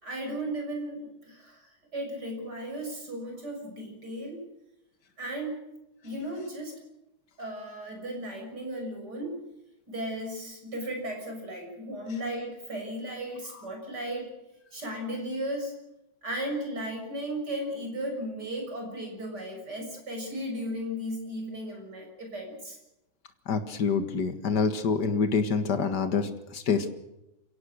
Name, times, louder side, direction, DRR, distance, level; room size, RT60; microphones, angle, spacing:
voice 1, 0.0-4.4 5.2-5.6 6.0-6.7 7.4-9.4 9.9-14.3 14.7-15.7 16.2-22.8, right 1 dB, 85° right, 2 dB, 7.4 m, -35 dB
voice 2, 23.5-26.9, left 5 dB, 85° left, 8 dB, 2.3 m, -26 dB
29.0 x 17.0 x 6.5 m, 0.92 s
omnidirectional pair, 1.8 m